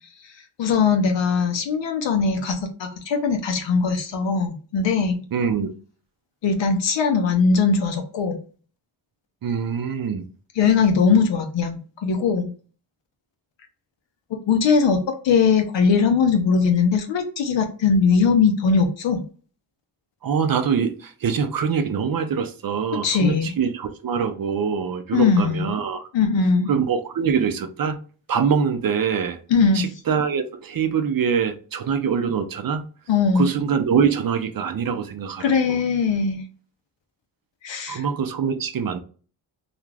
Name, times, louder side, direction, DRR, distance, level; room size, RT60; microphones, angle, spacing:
voice 1, 0.6-5.2 6.4-8.4 10.6-12.5 14.3-19.2 23.0-23.5 25.1-25.7 26.1-26.7 29.5-29.8 33.1-33.5 35.4-36.4 37.6-38.0, left 5 dB, 70° left, 0.6 m, -20 dB
voice 2, 5.3-5.7 9.4-10.3 20.2-26.1 26.7-28.0 28.3-29.4 29.7-32.8 33.3-35.8 37.9-39.0, right 6 dB, 50° right, 0.5 m, -24 dB
2.4 x 2.4 x 3.2 m
cardioid pair, 50°, 47 cm